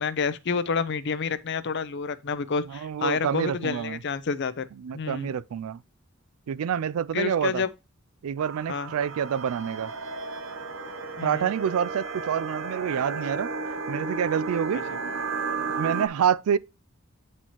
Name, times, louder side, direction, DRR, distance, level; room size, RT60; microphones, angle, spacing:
voice 1, 0.0-4.7 4.9-5.3 7.1-7.7 8.7-8.9 11.2-11.5, left 5 dB, 55° left, 0.5 m, -29 dB
voice 2, 2.7-4.0 4.8-5.8 6.5-7.6 8.2-9.9 11.2-13.5 13.9-14.8 15.8-16.6, right 8 dB, 85° right, 0.3 m, -27 dB
sound 1, 8.4-16.1, right 4 dB, 65° right, 0.7 m, -33 dB
8.9 x 4.4 x 2.9 m
head